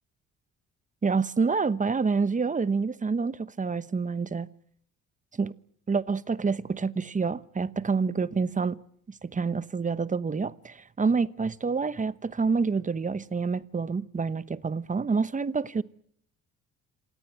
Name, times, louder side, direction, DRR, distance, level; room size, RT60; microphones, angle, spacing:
voice 1, 1.0-4.5 5.4-5.5 5.9-8.8 9.2-15.8, right 4 dB, 25° right, 1.0 m, -27 dB
26.5 x 17.5 x 9.3 m
cardioid pair, 90°, 30 cm